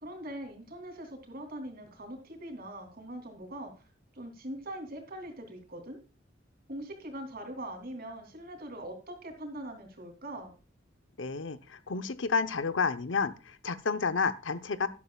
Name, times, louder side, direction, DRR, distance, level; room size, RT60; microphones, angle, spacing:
voice 1, 0.0-3.7 4.1-6.0 6.7-10.5, right 1 dB, 55° right, 3.1 m, -42 dB
voice 2, 11.2-14.9, left 4 dB, 75° left, 0.9 m, -30 dB
12.0 x 11.5 x 2.4 m
head